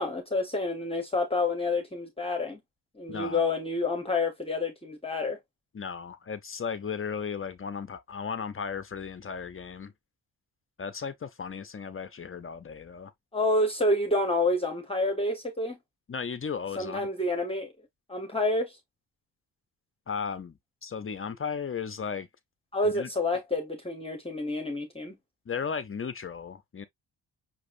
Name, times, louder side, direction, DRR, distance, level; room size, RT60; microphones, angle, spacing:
voice 1, 0.0-2.6 3.0-5.4 13.3-15.8 16.8-17.7 18.1-18.8 22.7-25.1, left 2 dB, 15° left, 1.1 m, -28 dB
voice 2, 3.1-3.4 5.7-9.9 10.8-13.1 16.1-17.1 20.1-22.3 22.8-23.1 25.5-26.8, left 6 dB, 30° left, 0.6 m, -35 dB
6.0 x 3.0 x 2.6 m
cardioid pair, 125°, 42 cm